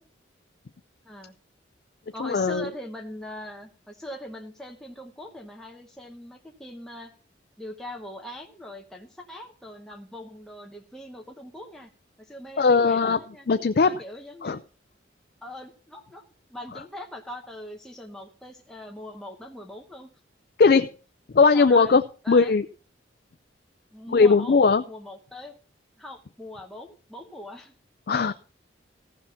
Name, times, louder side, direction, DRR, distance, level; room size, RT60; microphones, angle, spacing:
voice 1, 1.0-1.4 2.1-7.1 7.6-11.9 12.2-13.5 13.8-14.6 15.4-16.2 16.5-20.1 21.5-22.5 23.9-24.6 24.9-25.6 26.0-27.7, left 1 dB, 5° left, 0 dB, 1.0 m, -41 dB
voice 2, 2.2-2.7 12.6-13.2 13.5-13.9 14.4-14.6 20.6-20.9 21.3-22.0 22.3-22.6 24.1-24.8 28.1-28.3, left 4 dB, 50° left, 10 dB, 0.4 m, -19 dB
15.0 x 5.6 x 5.8 m, 0.39 s
head